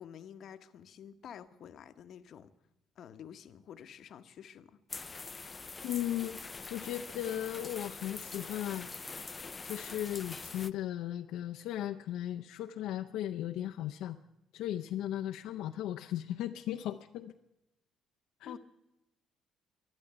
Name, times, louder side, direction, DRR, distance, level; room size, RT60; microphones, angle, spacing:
voice 1, 0.0-2.5 3.0-4.8 18.5-18.6, left 8 dB, 60° left, 10 dB, 0.8 m, -49 dB
sound 1, 4.9-10.7, left 4 dB, 25° left, 0.5 m, -44 dB
voice 2, 5.8-6.4 6.7-8.9 9.6-14.2 14.5-17.3 18.4-18.6, left 12 dB, 80° left, 5 dB, 0.5 m, -36 dB
12.0 x 11.0 x 9.3 m, 0.90 s
cardioid pair, 105°, 0 cm